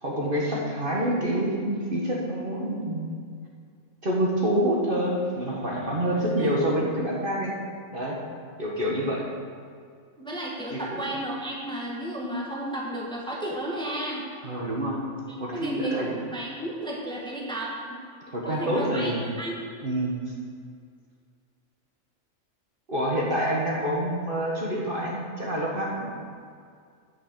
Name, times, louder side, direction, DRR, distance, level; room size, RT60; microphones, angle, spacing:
voice 1, 0.0-3.1 4.0-7.5 7.9-8.2 8.6-9.3 10.7-11.0 14.4-15.0 15.4-16.2 18.3-19.2 19.8-20.2 22.9-26.1, right 1 dB, 40° right, -3 dB, 1.6 m, -27 dB
voice 2, 10.2-14.2 15.3-18.0 18.4-19.5, right 1 dB, 5° left, -4 dB, 1.5 m, -33 dB
10.5 x 6.1 x 6.7 m, 2.2 s
omnidirectional pair, 1.4 m